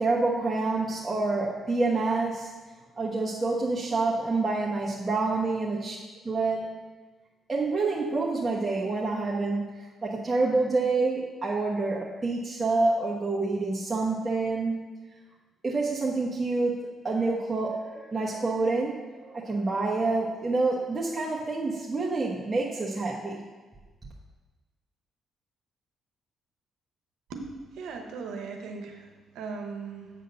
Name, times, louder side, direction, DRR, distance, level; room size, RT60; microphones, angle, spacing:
voice 1, 0.0-2.5 3.0-6.0 6.2-6.7 7.5-9.7 10.0-14.8 15.6-23.4, right 3 dB, 20° right, -6 dB, 1.3 m, -27 dB
voice 2, 27.3-30.1, right 4 dB, 85° right, 3 dB, 0.9 m, -38 dB
8.1 x 3.7 x 6.7 m, 1.3 s
cardioid pair, 90°, 0 cm